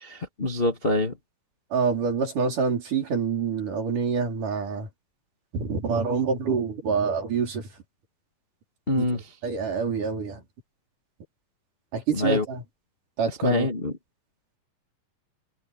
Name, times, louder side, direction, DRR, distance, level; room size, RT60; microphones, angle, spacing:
voice 1, 0.0-1.1 8.9-9.2 12.1-12.4 13.4-13.9, left 2 dB, 25° left, 1.2 m, -25 dB
voice 2, 1.7-4.9 5.5-7.7 9.0-9.1 9.4-10.4 11.9-12.6 13.2-13.7, right 5 dB, 60° right, 6.1 m, -26 dB
omnidirectional pair, 4.1 m